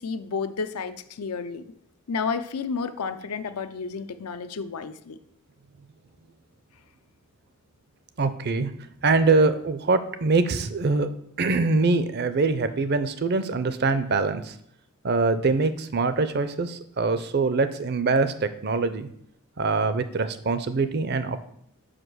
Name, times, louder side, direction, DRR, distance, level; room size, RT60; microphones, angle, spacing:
voice 1, 0.0-1.6 2.1-5.2, left 5 dB, 85° left, 10 dB, 0.6 m, -31 dB
voice 2, 8.2-8.7 9.0-11.1 11.4-14.5 15.0-19.1 19.6-21.5, right 3 dB, 45° right, 11 dB, 0.5 m, -23 dB
5.3 x 5.0 x 6.2 m, 0.71 s
head